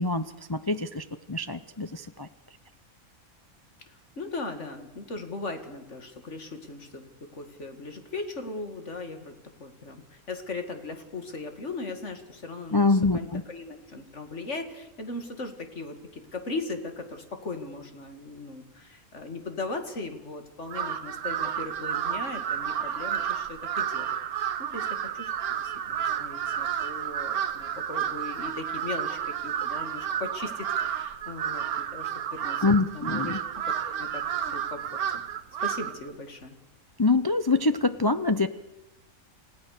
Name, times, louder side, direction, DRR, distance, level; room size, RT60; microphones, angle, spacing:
voice 1, 0.0-2.6 12.7-13.4 32.6-33.4 37.0-38.5, left 3 dB, 30° left, 10 dB, 0.4 m, -25 dB
voice 2, 3.9-9.3 9.6-12.9 13.1-25.3 25.6-33.4 33.6-35.2 35.6-36.6, left 3 dB, 55° left, 6 dB, 2.6 m, -38 dB
Crow, 20.7-36.1, right 9 dB, 85° right, 1.5 m, -31 dB
29.0 x 17.0 x 6.7 m, 0.97 s
omnidirectional pair, 1.5 m